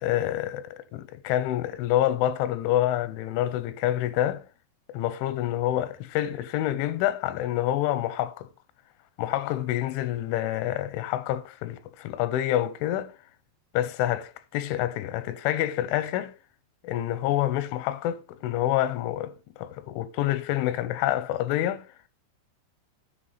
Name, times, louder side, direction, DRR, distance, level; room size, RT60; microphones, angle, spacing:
voice 1, 0.0-4.4 4.9-8.5 9.2-13.1 13.7-16.3 16.8-21.8, left 13 dB, 90° left, 3.0 m, -27 dB
9.3 x 4.1 x 5.6 m
omnidirectional pair, 5.4 m